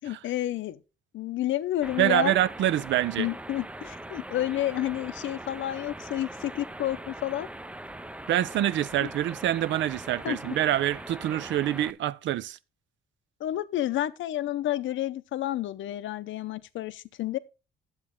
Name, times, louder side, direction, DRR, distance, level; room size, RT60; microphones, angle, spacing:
voice 1, 0.0-0.8 1.1-2.4 3.2-7.5 9.0-9.1 10.2-10.6 13.4-17.4, left 13 dB, 75° left, 0.6 m, -30 dB
sound 1, 1.8-11.9, right 1 dB, 5° right, 0.4 m, -41 dB
voice 2, 2.0-3.3 8.3-12.6, right 13 dB, 70° right, 0.5 m, -26 dB
9.6 x 7.3 x 3.7 m
cardioid pair, 90°, 20 cm